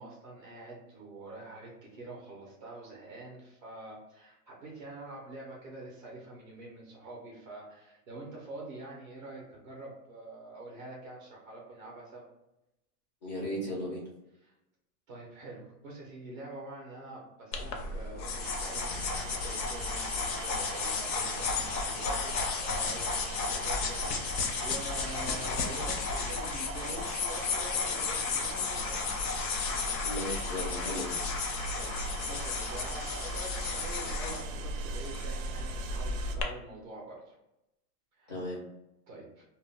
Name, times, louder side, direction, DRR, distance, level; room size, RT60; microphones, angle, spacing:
voice 1, 0.0-12.3 14.3-14.5 15.1-29.0 31.7-32.0 32.2-37.3 38.2-38.6 39.1-39.4, right 2 dB, 40° right, -3 dB, 0.4 m, -46 dB
voice 2, 13.2-14.0 30.0-31.2 38.3-38.6, left 1 dB, 30° left, -4 dB, 0.4 m, -36 dB
sound 1, 17.5-36.4, left 4 dB, 85° left, 0.7 m, -33 dB
sound 2, 18.4-36.4, right 7 dB, 90° right, 0.6 m, -45 dB
2.1 x 2.0 x 3.3 m, 0.89 s
supercardioid pair, 175°, 49 cm